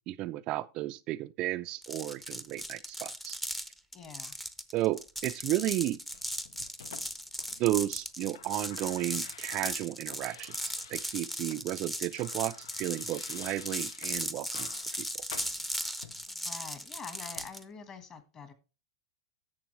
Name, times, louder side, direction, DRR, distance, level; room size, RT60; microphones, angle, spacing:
voice 1, 0.0-3.4 4.7-6.0 7.6-15.1, right 16 dB, 35° right, 0.3 m, -33 dB
sound 1, 1.8-17.6, equal, 5° left, 0.6 m, -37 dB
voice 2, 3.9-4.4 16.3-18.5, left 5 dB, 25° left, 1.4 m, -46 dB
sound 2, 6.1-7.8 8.1-11.6 11.9-16.3 17.3-17.5, left 8 dB, 85° left, 0.7 m, -50 dB
11.0 x 7.2 x 3.1 m
supercardioid pair, 150°, 2 cm